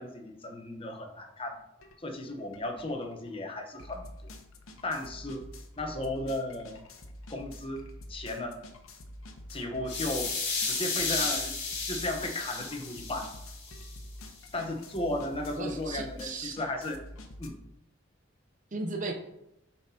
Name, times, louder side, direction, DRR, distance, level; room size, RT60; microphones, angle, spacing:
voice 1, 0.0-1.6 2.0-4.3 4.8-5.4 5.8-6.8 7.3-7.8 8.1-8.6 9.5-10.3 10.7-11.5 11.9-13.3 14.5-17.0 17.4-17.6, left 1 dB, 25° left, 3 dB, 0.9 m, -35 dB
sound 1, 1.8-2.0 2.3-17.5, left 1 dB, 90° left, 0.9 m, -47 dB
sound 2, 9.9-13.9, left 4 dB, 55° left, 2.3 m, -33 dB
voice 2, 15.6-16.6 18.7-19.1, right 3 dB, 40° right, 3 dB, 0.8 m, -35 dB
8.4 x 5.7 x 2.8 m, 0.85 s
head